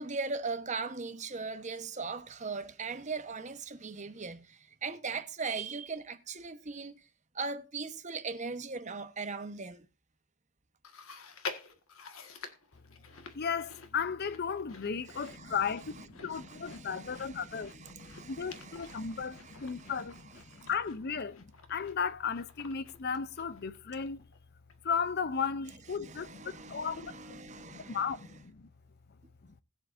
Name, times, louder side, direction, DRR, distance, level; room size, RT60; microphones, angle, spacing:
voice 1, 0.0-7.0 7.3-9.9 15.1-15.6 16.3-19.9 20.5-20.7 26.0-28.0, right 4 dB, 35° right, 1.0 m, -40 dB
Chewing mastication, 10.8-24.4 24.7-24.8 25.6-25.7, left 5 dB, 80° left, 1.6 m, -49 dB
voice 2, 13.3-24.2 24.8-28.7, left 6 dB, 50° left, 0.6 m, -35 dB
20.0 x 7.3 x 2.6 m
head